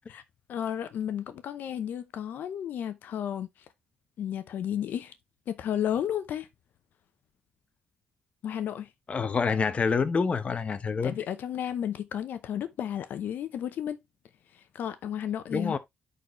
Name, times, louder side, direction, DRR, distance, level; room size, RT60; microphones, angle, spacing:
voice 1, 0.5-3.5 4.2-5.1 5.5-6.5 8.4-8.9 11.0-14.0 14.5-15.8, left 9 dB, 75° left, 0.7 m, -33 dB
voice 2, 9.1-11.2 15.5-15.8, left 5 dB, 40° left, 0.9 m, -27 dB
9.2 x 4.1 x 3.1 m
cardioid pair, 90°, 3 cm